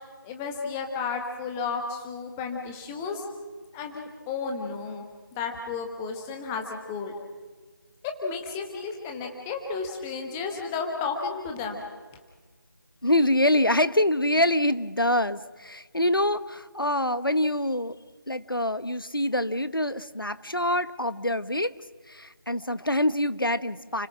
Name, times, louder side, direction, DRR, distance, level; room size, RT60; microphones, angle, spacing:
voice 1, 0.2-3.2 3.7-5.0 5.4-7.1 8.0-11.8, left 5 dB, 5° left, 3 dB, 1.1 m, -33 dB
voice 2, 13.0-18.0 18.3-21.7 22.1-24.1, left 1 dB, 85° left, 14 dB, 1.3 m, -25 dB
29.5 x 17.5 x 6.2 m, 1.4 s
figure-of-eight pair, 165°, 11 cm